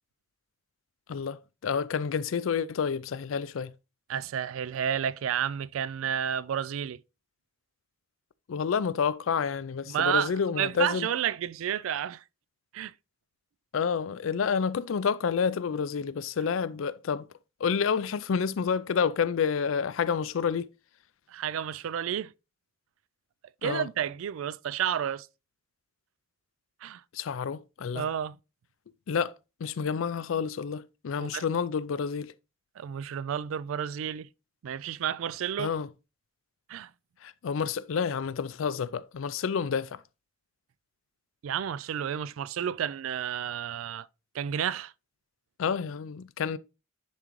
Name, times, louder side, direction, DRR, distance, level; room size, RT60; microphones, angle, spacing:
voice 1, 1.1-3.7 8.5-11.1 13.7-17.2 17.6-20.7 23.6-23.9 27.1-28.1 29.1-29.3 29.6-32.3 35.6-35.9 37.2-40.0 45.6-46.6, left 6 dB, 80° left, 0.4 m, -29 dB
voice 2, 4.1-7.0 9.9-12.2 12.7-12.9 21.3-22.3 23.6-25.3 26.8-27.0 27.9-28.4 31.2-31.4 32.8-34.3 34.6-35.7 36.7-36.9 41.4-44.1 44.3-44.9, right 9 dB, 85° right, 0.3 m, -31 dB
10.0 x 3.7 x 3.1 m
head